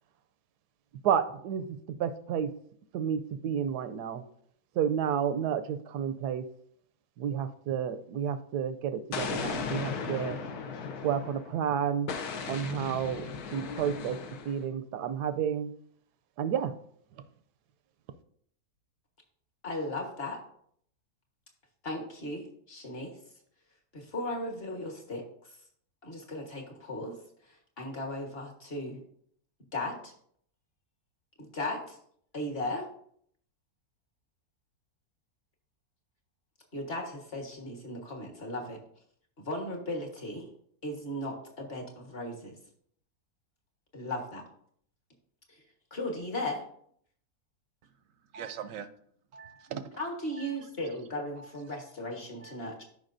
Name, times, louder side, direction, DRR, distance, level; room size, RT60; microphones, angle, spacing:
voice 1, 1.0-2.5 2.9-4.2 4.8-6.5 7.2-10.4 11.0-12.1 12.5-14.2 14.4-15.7 16.4-16.7, right 8 dB, 85° right, 11 dB, 1.2 m, -31 dB
Explosion, 9.1-11.6 12.1-14.6, left 5 dB, 75° left, 1.3 m, -36 dB
voice 2, 19.6-20.4 21.8-23.1 23.9-25.2 26.0-27.2 27.8-29.0 29.7-30.1 31.4-32.0 32.3-32.9 36.7-38.8 39.4-40.5 40.8-42.6 43.9-44.4 45.9-46.6 50.0-52.8, left 1 dB, 40° left, 1 dB, 1.6 m, -36 dB
voice 3, 48.2-48.9 49.3-49.9 50.3-50.7 51.4-51.8 52.4-52.6, right 8 dB, 70° right, 12 dB, 0.9 m, -43 dB
13.0 x 5.4 x 2.6 m, 0.65 s
omnidirectional pair, 1.7 m